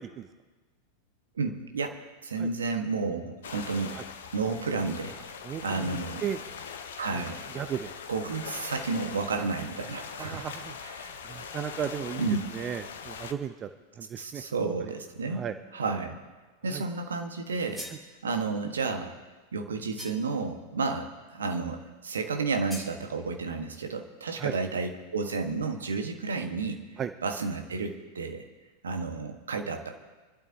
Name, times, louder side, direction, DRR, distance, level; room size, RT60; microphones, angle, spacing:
voice 1, 1.3-4.0 4.3-5.1 5.6-6.3 7.0-7.4 8.1-10.5 10.8-11.1 12.2-12.4 14.2-15.4 15.7-16.2 16.6-17.9 18.2-19.1 19.5-26.8 27.2-28.4 28.8-30.0, right 4 dB, 70° right, 4 dB, 1.6 m, -31 dB
sound 1, 3.4-13.3, left 6 dB, 60° left, 1.0 m, -41 dB
voice 2, 5.4-6.4 7.1-7.2 7.5-7.9 10.2-10.8 11.1-13.7 14.0-14.4 14.8-14.9 15.3-15.5 16.7-16.8 24.4-24.5 27.0-27.1, right 8 dB, 25° right, 10 dB, 0.6 m, -35 dB
sound 2, 17.5-18.1 20.0-20.4 22.7-23.0, equal, ahead, 2.6 m, -43 dB
26.5 x 12.0 x 2.9 m, 1.3 s
figure-of-eight pair, 90°, 0 cm